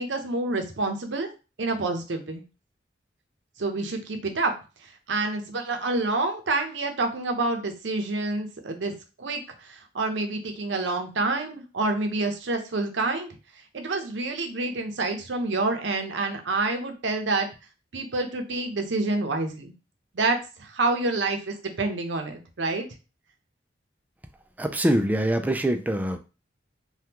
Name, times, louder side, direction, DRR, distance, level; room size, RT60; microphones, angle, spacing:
voice 1, 0.0-1.3 1.6-2.4 3.6-4.5 5.1-13.3 13.7-17.5 17.9-19.7 20.1-22.9, right 3 dB, 85° right, 5 dB, 0.7 m, -28 dB
voice 2, 24.6-26.2, right 1 dB, 10° right, 7 dB, 0.3 m, -24 dB
3.5 x 2.3 x 2.9 m, 0.31 s
head